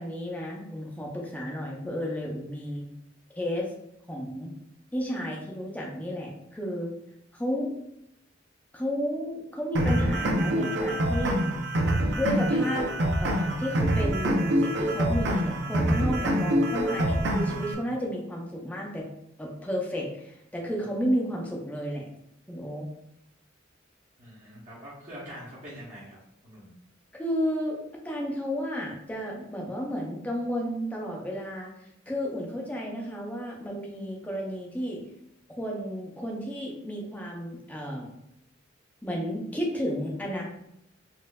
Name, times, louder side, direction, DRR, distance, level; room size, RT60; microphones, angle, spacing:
voice 1, 0.0-2.9 3.4-3.7 4.1-4.5 4.9-6.9 7.4-7.7 8.7-11.4 12.1-12.9 13.2-19.1 19.4-22.0 22.5-22.9 27.2-27.8 28.0-31.7 32.1-35.0 35.6-38.1 39.0-40.4, equal, 10° left, -2 dB, 0.6 m, -32 dB
sound 1, 9.7-17.7, right 1 dB, 60° right, 0.5 m, -25 dB
voice 2, 24.2-26.2 26.4-26.7, equal, 40° right, -9 dB, 1.0 m, -44 dB
4.2 x 2.5 x 2.2 m, 0.79 s
head